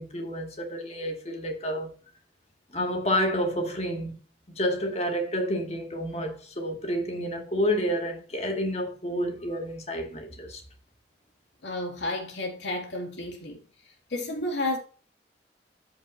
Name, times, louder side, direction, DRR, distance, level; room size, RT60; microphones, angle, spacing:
voice 1, 0.0-1.9 2.7-4.2 4.5-10.6, equal, 35° left, 2.1 m, -29 dB
voice 2, 11.6-13.6 14.1-14.8, left 2 dB, 85° left, 2.7 m, -31 dB
13.5 x 5.3 x 2.7 m
head